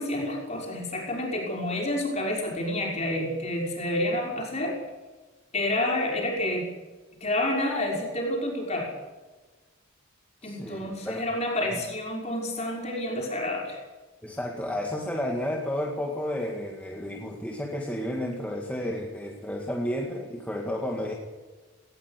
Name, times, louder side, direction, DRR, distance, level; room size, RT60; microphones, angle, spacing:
voice 1, 0.0-4.8 5.5-6.6 7.2-8.9 10.4-13.8, left 1 dB, 30° left, 0 dB, 5.7 m, -29 dB
voice 2, 10.4-11.2 14.2-21.1, left 1 dB, 5° left, -1 dB, 2.1 m, -32 dB
18.5 x 18.5 x 8.3 m, 1.3 s
head